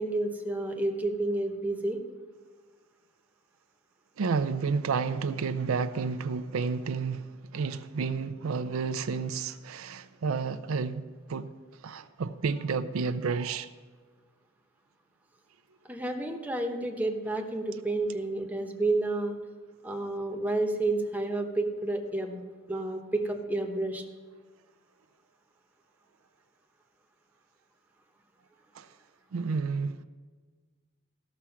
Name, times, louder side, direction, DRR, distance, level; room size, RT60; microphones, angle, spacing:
voice 1, 0.0-2.0 15.8-19.4 19.8-22.4 22.7-24.0, right 2 dB, 10° right, 0.9 m, -30 dB
voice 2, 4.2-11.0 11.3-11.5 11.8-13.7 28.7-28.9 29.3-30.0, right 5 dB, 85° right, 0.5 m, -31 dB
14.5 x 6.1 x 5.7 m
head